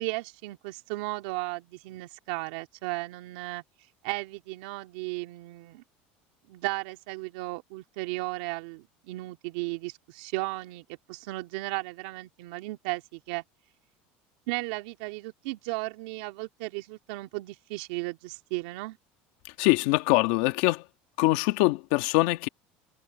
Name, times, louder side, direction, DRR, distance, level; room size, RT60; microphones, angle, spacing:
voice 1, 0.0-3.6 4.0-5.8 6.5-13.4 14.5-19.0, right 23 dB, 80° right, 2.8 m, -35 dB
voice 2, 19.6-20.8 21.2-22.5, left 20 dB, 70° left, 1.7 m, -23 dB
cardioid pair, 165°, 4 cm